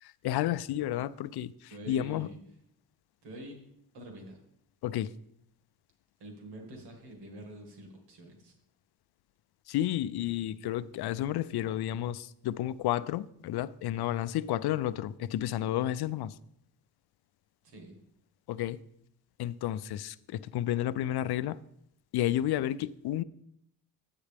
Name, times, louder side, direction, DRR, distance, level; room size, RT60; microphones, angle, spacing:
voice 1, 0.0-2.3 4.8-5.1 9.7-16.3 18.5-18.8 19.4-21.6 22.1-23.2, left 12 dB, 75° left, 0.5 m, -31 dB
voice 2, 1.7-2.4 3.2-3.6 3.9-4.4 6.2-8.5 17.6-18.0, right 1 dB, 90° right, 2.1 m, -46 dB
9.7 x 8.1 x 3.4 m
cardioid pair, 75°, 40 cm